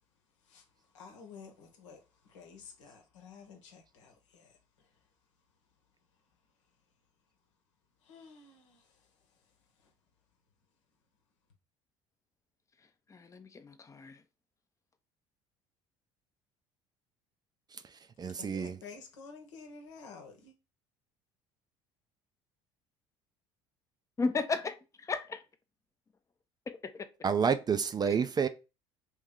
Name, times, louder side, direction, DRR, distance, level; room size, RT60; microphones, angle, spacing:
voice 1, 0.9-4.9 8.0-9.1 9.8-9.9 18.4-20.5, left 5 dB, 80° left, 1.0 m, -52 dB
voice 2, 13.1-14.2 24.2-24.7 25.1-25.4 26.8-26.9, left 4 dB, 20° left, 0.6 m, -34 dB
voice 3, 18.2-18.8 27.2-28.5, right 6 dB, 25° right, 0.4 m, -29 dB
3.1 x 3.0 x 3.7 m
hypercardioid pair, 60°, 15 cm